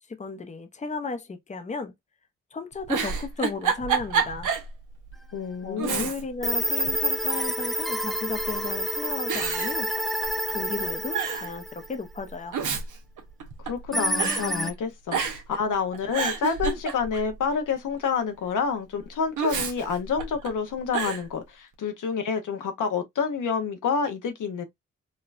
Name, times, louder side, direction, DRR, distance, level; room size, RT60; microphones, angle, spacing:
voice 1, 0.1-1.9 2.5-4.5 5.6-9.9 10.5-12.6, left 4 dB, 25° left, 0.7 m, -34 dB
Giggle, 2.7-4.7 5.1-5.2 5.8-6.5 6.8-7.6 8.4-8.8 9.3-10.5 10.8-10.9 11.1-11.5 12.3-13.9 14.2-14.4 15.1-15.6 15.9-17.3 19.4-20.5 20.9-21.2, right 6 dB, 70° right, 1.0 m, -29 dB
voice 2, 5.3-6.1 13.6-24.6, left 6 dB, 75° left, 0.8 m, -28 dB
sound 1, 6.4-12.0 13.9-14.7, equal, ahead, 0.3 m, -28 dB
4.3 x 2.2 x 2.5 m
supercardioid pair, 55°, 31 cm